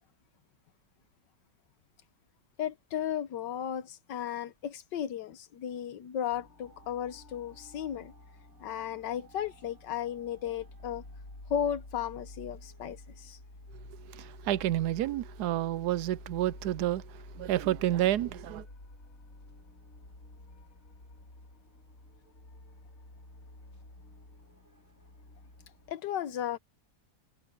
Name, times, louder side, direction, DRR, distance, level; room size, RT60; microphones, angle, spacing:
voice 1, 2.6-8.1 8.6-11.0 11.5-13.4 25.9-26.6, left 9 dB, 85° left, 1.6 m, -35 dB
sound 1, 6.3-25.9, left 2 dB, 50° left, 4.9 m, -51 dB
voice 2, 14.1-18.6, right 13 dB, 70° right, 1.1 m, -30 dB
omnidirectional pair, 1.9 m